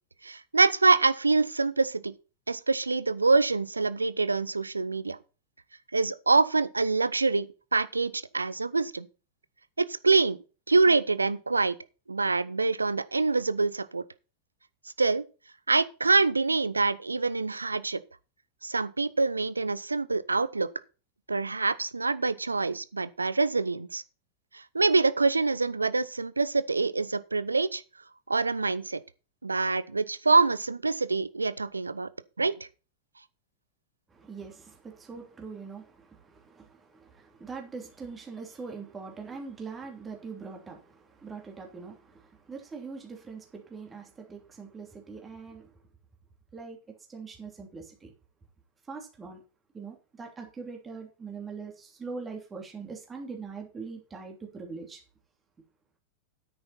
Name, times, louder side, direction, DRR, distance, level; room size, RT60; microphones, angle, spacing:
voice 1, 0.2-2.1 2.5-5.2 5.9-7.5 7.7-9.1 9.8-10.4 10.7-11.7 12.1-14.0 15.0-15.2 15.7-18.0 18.6-20.7 21.3-24.0 24.5-27.8 28.3-29.0 29.4-32.1 32.4-32.5, right 3 dB, 80° right, 0.6 m, -25 dB
voice 2, 34.1-45.7 46.5-46.8 47.1-48.1 48.9-49.4 49.7-55.0, right 4 dB, 15° right, 2.9 m, -42 dB
10.0 x 8.7 x 4.2 m
figure-of-eight pair, 90°, 0 cm